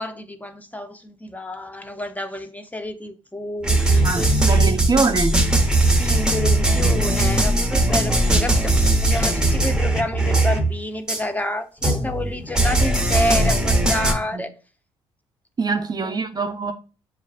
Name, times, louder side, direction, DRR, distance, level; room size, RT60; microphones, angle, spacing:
voice 1, 0.0-4.9 6.0-14.5 15.7-16.2, left 1 dB, 15° left, 0.6 m, -29 dB
sound 1, 3.6-10.8 11.1-11.2 11.8-14.1, right 2 dB, 5° right, 1.0 m, -19 dB
voice 2, 4.0-5.4 14.3-14.4 15.6-16.7, right 4 dB, 35° right, 0.5 m, -23 dB
7.1 x 2.4 x 2.4 m
supercardioid pair, 65°, 12 cm